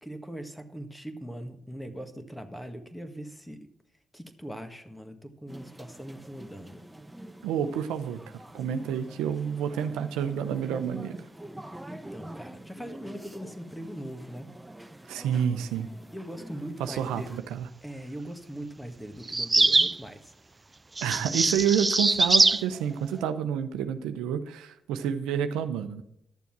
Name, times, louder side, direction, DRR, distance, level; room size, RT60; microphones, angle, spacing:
voice 1, 0.0-3.6 4.1-6.8 11.8-14.5 16.1-17.4 17.8-20.3, right 1 dB, 5° left, 8 dB, 1.7 m, -41 dB
sound 1, 5.5-17.4, right 1 dB, 10° right, 0.9 m, -46 dB
voice 2, 7.4-11.2 15.1-15.9 16.8-17.7 21.0-26.0, right 8 dB, 85° right, 9 dB, 0.7 m, -29 dB
sound 2, 19.3-20.0 21.0-22.6, right 3 dB, 30° right, 0.4 m, -22 dB
11.5 x 7.0 x 6.0 m, 0.76 s
supercardioid pair, 50°, 0 cm